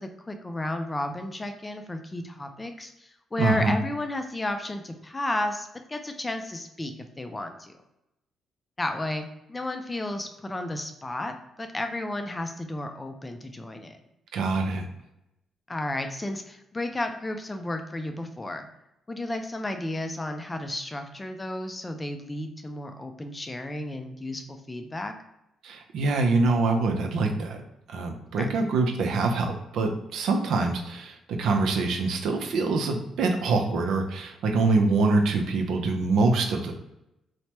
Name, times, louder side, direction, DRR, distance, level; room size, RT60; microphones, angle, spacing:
voice 1, 0.0-7.7 8.8-14.0 15.7-18.6 19.1-25.1 28.4-28.5, left 1 dB, 20° left, 6 dB, 0.4 m, -33 dB
voice 2, 3.4-3.8 14.3-14.8 25.6-27.6 27.9-36.7, right 3 dB, 75° right, 3 dB, 0.5 m, -25 dB
3.2 x 2.1 x 2.9 m, 0.87 s
cardioid pair, 90°, 0 cm